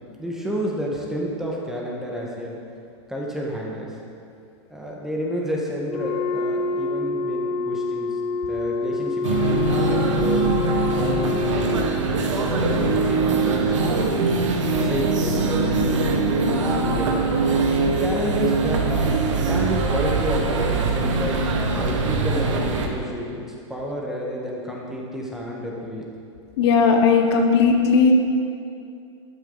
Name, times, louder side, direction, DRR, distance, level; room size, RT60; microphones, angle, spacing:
voice 1, 0.2-2.6 3.1-4.0 4.7-8.2 8.5-10.5 11.0-14.1 14.6-17.3 17.8-21.4 21.8-23.4 23.7-26.1, equal, 5° right, -3 dB, 1.5 m, -30 dB
Wind instrument woodwind instrument, 5.8-12.0, left 3 dB, 35° left, 0.8 m, -27 dB
sound 1, 9.2-22.9, right 3 dB, 80° right, 1.5 m, -22 dB
voice 2, 26.6-28.1, left 5 dB, 55° left, 3 dB, 1.2 m, -17 dB
12.0 x 9.3 x 4.0 m, 2.4 s
hypercardioid pair, 140°, 16 cm